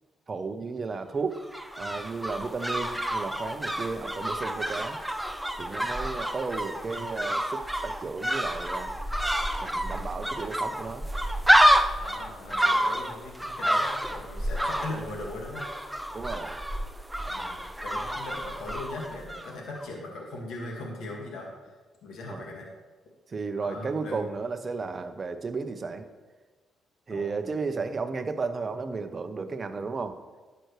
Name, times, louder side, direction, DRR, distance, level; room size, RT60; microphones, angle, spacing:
voice 1, 0.3-1.4 1.8-5.0 5.6-8.9 9.6-11.1 16.1-16.6 22.3-22.5 23.3-26.1 27.1-30.2, right 4 dB, 35° right, 8 dB, 0.8 m, -33 dB
sound 1, 1.3-19.5 19.8-19.9, equal, 5° right, 0.6 m, -28 dB
voice 2, 5.8-6.3 12.0-15.6 17.3-21.5 22.0-22.7 23.6-24.2 27.1-27.5, left 2 dB, 75° left, -1 dB, 2.0 m, -39 dB
11.5 x 7.9 x 3.3 m, 1.3 s
cardioid pair, 90°, 0 cm